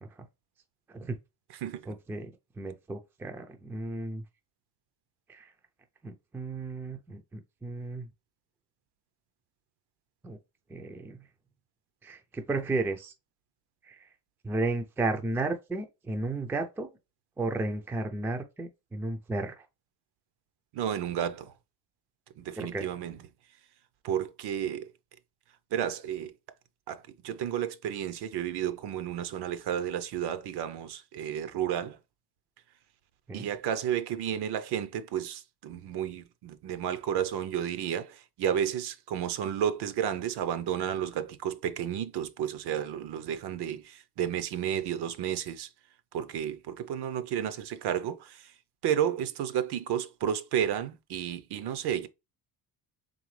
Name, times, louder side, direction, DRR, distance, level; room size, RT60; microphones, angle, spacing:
voice 1, 1.9-2.3 2.6-4.2 5.3-5.5 6.0-8.1 10.2-10.4 10.7-11.2 12.0-13.1 13.8-14.1 14.4-16.9 17.4-19.7 22.6-22.9 33.3-33.5, right 2 dB, 5° right, 0.3 m, -33 dB
voice 2, 20.7-21.5 22.4-23.2 24.0-24.9 25.7-26.3 26.9-32.0 33.3-45.7 46.1-48.5 48.8-52.1, right 9 dB, 65° right, 0.6 m, -32 dB
3.9 x 3.4 x 3.1 m
cardioid pair, 140°, 43 cm